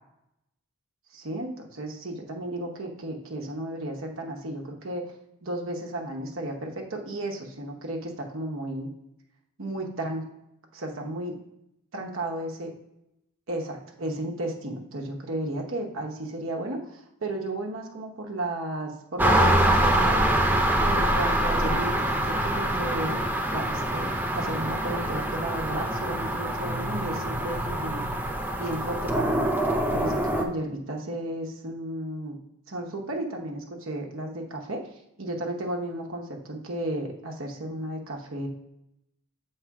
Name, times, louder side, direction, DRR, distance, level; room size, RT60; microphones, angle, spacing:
voice 1, 1.1-5.1 5.4-8.9 9.6-10.2 10.7-11.3 11.9-12.7 13.5-20.3 20.8-23.1 23.5-24.1 24.3-28.0 28.6-29.5 29.9-32.4 32.7-34.8 35.2-38.5, right 1 dB, 65° right, 1 dB, 0.9 m, -33 dB
sound 1, 19.2-30.4, right 1 dB, 10° right, 0.4 m, -25 dB
7.0 x 3.2 x 4.7 m, 0.83 s
head